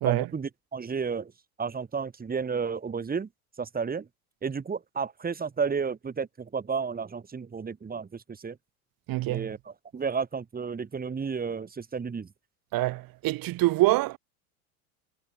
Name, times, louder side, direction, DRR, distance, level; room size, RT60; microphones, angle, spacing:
voice 1, 0.0-1.3 1.6-3.3 3.6-4.1 4.4-8.6 9.3-12.3, right 5 dB, 20° right, 2.5 m, -32 dB
voice 2, 9.1-9.5 12.7-14.2, right 18 dB, 50° right, 1.8 m, -25 dB
hypercardioid pair, 85°, 45 cm